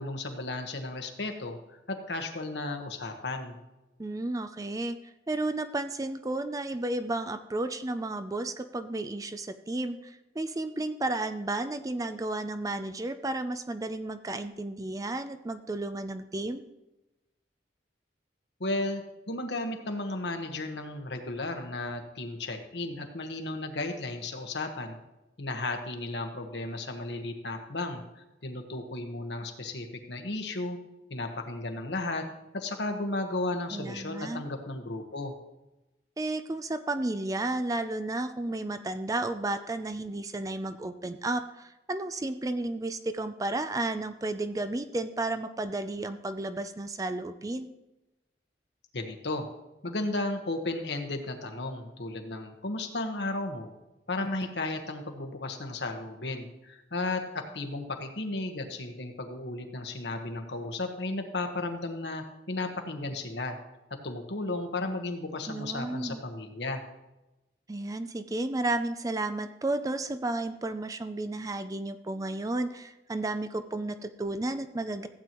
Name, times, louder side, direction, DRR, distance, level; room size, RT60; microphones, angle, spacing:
voice 1, 0.0-1.6 1.9-3.6 18.6-25.0 25.4-30.8 31.1-32.2 32.5-35.3 48.9-49.4 49.8-53.7 54.1-63.6 64.0-66.8, left 2 dB, 75° left, 5 dB, 1.3 m, -34 dB
voice 2, 4.0-5.0 5.3-16.6 33.7-34.4 36.2-47.7 65.5-66.2 67.7-75.1, right 2 dB, 20° right, 10 dB, 0.4 m, -32 dB
15.0 x 8.7 x 3.0 m, 0.98 s
head